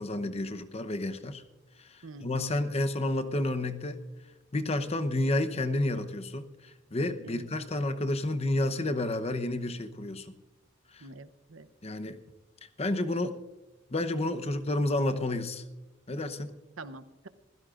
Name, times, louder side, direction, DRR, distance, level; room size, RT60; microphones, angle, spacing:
voice 1, 0.0-1.4 2.2-4.0 4.5-6.4 6.9-10.3 10.9-11.0 11.8-12.2 12.8-13.4 13.9-15.6 16.1-16.6, left 2 dB, 30° left, 9 dB, 0.8 m, -30 dB
voice 2, 2.0-2.6 7.2-7.5 11.0-11.7 16.8-17.3, right 2 dB, 90° right, 12 dB, 0.8 m, -46 dB
26.5 x 16.5 x 2.5 m, 1.1 s
head